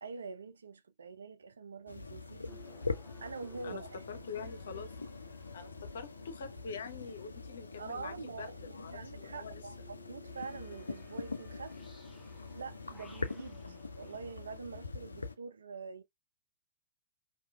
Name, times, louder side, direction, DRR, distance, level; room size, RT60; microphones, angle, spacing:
voice 1, 0.0-2.6 3.2-4.2 7.8-11.8 12.5-16.0, right 5 dB, 75° right, 0.3 m, -45 dB
sound 1, 1.9-15.3, left 3 dB, 85° left, 0.4 m, -43 dB
sound 2, 2.4-14.5, left 2 dB, 10° left, 0.7 m, -60 dB
voice 2, 4.1-4.9 5.5-9.6 13.6-13.8, left 5 dB, 65° left, 0.8 m, -45 dB
2.9 x 2.3 x 2.3 m
figure-of-eight pair, 105°, 0 cm